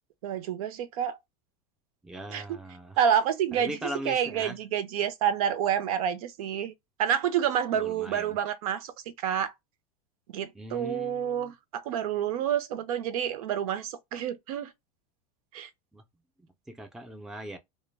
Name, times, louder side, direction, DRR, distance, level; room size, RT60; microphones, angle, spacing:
voice 1, 0.2-1.2 2.3-2.4 3.0-6.7 7.0-8.9 9.2-9.5 10.3-14.7 15.5-15.7, right 9 dB, 85° right, 0.5 m, -28 dB
voice 2, 2.0-3.0 3.5-4.6 7.7-8.4 10.5-11.5 15.9-16.0 16.7-17.6, right 1 dB, 5° right, 0.4 m, -40 dB
2.1 x 2.1 x 3.2 m
supercardioid pair, 135°, 18 cm